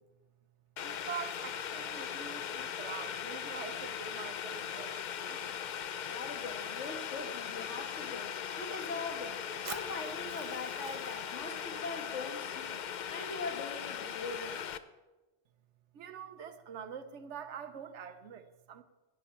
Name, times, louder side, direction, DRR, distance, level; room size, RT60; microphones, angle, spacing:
Boiling, 0.8-14.8, left 8 dB, 60° left, 0.5 m, -39 dB
voice 1, 0.8-5.6 15.9-18.8, right 7 dB, 80° right, 10 dB, 1.1 m, -45 dB
voice 2, 6.1-12.8 13.1-14.6, left 3 dB, 85° left, 3 dB, 1.8 m, -42 dB
Fire, 9.6-13.7, right 4 dB, 35° right, 0.7 m, -50 dB
11.0 x 10.5 x 4.4 m, 1.1 s
omnidirectional pair, 1.2 m